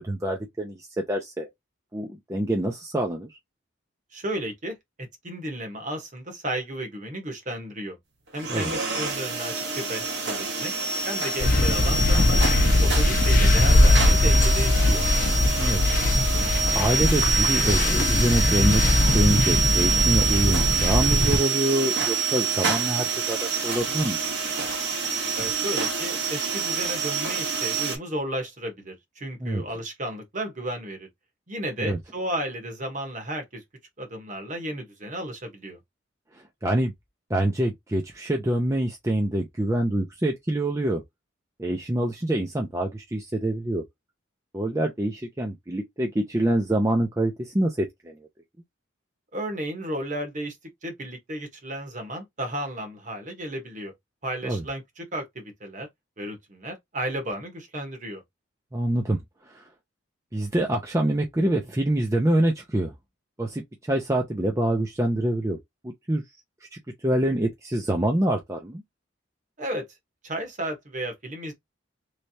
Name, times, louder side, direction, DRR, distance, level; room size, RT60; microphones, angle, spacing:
voice 1, 0.0-1.5 1.9-3.4 8.5-8.7 15.6-15.8 16.1-24.2 29.4-29.6 31.8-32.0 36.3-36.9 37.3-41.0 41.6-43.8 44.5-48.2 54.4-54.6 58.7-59.7 60.3-62.9 63.4-65.6 65.8-66.2 66.7-68.8, right 1 dB, 15° right, 0.5 m, -26 dB
voice 2, 4.1-8.0 8.3-10.7 11.0-12.4 12.8-15.0 25.3-31.1 31.5-33.6 34.0-35.8 49.3-50.6 50.8-53.9 54.2-55.9 56.2-58.2 69.6-69.8 70.2-71.5, right 1 dB, 40° right, 1.2 m, -33 dB
sound 1, 8.3-28.0, right 4 dB, 60° right, 1.4 m, -26 dB
sound 2, 11.4-21.4, left 2 dB, 45° left, 0.7 m, -21 dB
3.2 x 3.2 x 2.8 m
head